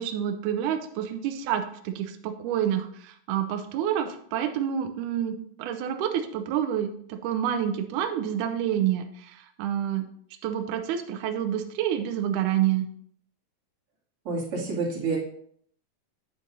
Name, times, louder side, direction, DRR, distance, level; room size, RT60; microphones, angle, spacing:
voice 1, 0.0-10.1 10.4-12.9, right 10 dB, 75° right, 6 dB, 2.0 m, -28 dB
voice 2, 14.2-15.2, right 3 dB, 40° right, -6 dB, 3.3 m, -28 dB
10.0 x 7.4 x 2.7 m, 0.64 s
omnidirectional pair, 4.1 m